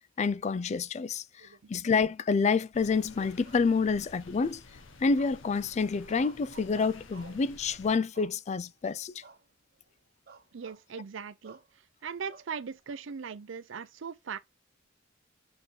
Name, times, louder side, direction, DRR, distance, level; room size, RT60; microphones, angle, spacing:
voice 1, 0.2-1.2 1.7-4.6 5.0-9.1, left 4 dB, 35° left, 0.3 m, -28 dB
sound 1, 2.7-7.9, left 3 dB, 65° left, 1.0 m, -52 dB
sound 2, 3.1-4.2 5.2-5.6 6.1-7.5 8.1-8.7 9.2-9.5 9.8-9.9 10.3-10.8 11.4-11.7 12.3-13.0, right 4 dB, 50° right, 1.0 m, -53 dB
voice 2, 10.5-11.6 12.0-14.4, right 6 dB, 65° right, 0.5 m, -39 dB
6.5 x 4.6 x 3.8 m
head